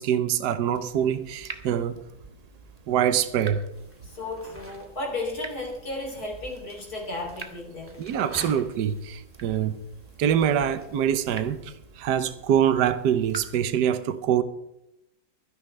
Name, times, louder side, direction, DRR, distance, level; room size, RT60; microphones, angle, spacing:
voice 1, 0.0-2.0 2.9-3.6 8.0-9.8 10.2-14.4, right 9 dB, 70° right, 1.4 m, -24 dB
Water tap faucet / Drip, 0.7-13.7, right 3 dB, 25° right, 1.0 m, -47 dB
sound 1, 3.7-11.6, equal, 5° right, 2.3 m, -48 dB
voice 2, 4.0-8.0, left 2 dB, 55° left, 3.8 m, -34 dB
24.0 x 10.5 x 3.3 m
omnidirectional pair, 1.9 m